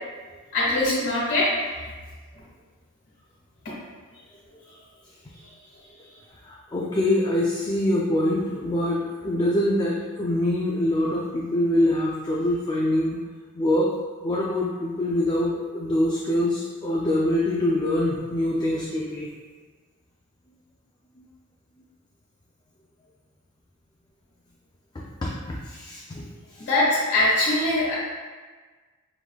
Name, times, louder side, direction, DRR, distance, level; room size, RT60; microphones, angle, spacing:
voice 1, 0.5-1.5 26.6-27.9, left 2 dB, 50° left, -7 dB, 1.4 m, -22 dB
voice 2, 6.4-13.2 13.6-13.9 14.2-19.3 24.9-26.2 26.6-26.7, left 1 dB, 20° left, -4 dB, 0.4 m, -24 dB
4.7 x 3.6 x 2.3 m, 1.4 s
head